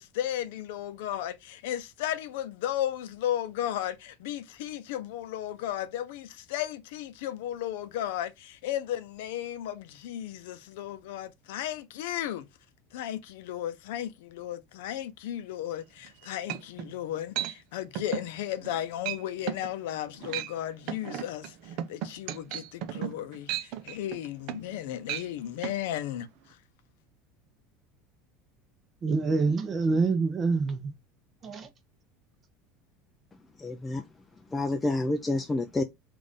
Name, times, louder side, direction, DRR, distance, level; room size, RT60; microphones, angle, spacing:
voice 1, 0.0-12.4 12.9-21.5 21.9-26.3, left 11 dB, 85° left, 0.6 m, -34 dB
sound 1, 16.0-16.1 16.5-16.9 17.4-17.5 18.0-18.3 18.6-18.8 19.1-19.2 19.5-19.7 20.1-20.5 20.9-24.8 25.0-25.3 25.6-25.8, right 12 dB, 55° right, 0.5 m, -34 dB
voice 2, 29.0-30.9 31.4-31.7, right 4 dB, 25° right, 0.8 m, -26 dB
voice 3, 33.6-34.1 34.5-35.8, left 2 dB, 10° left, 0.3 m, -28 dB
3.9 x 2.5 x 3.5 m
cardioid pair, 155°, 0 cm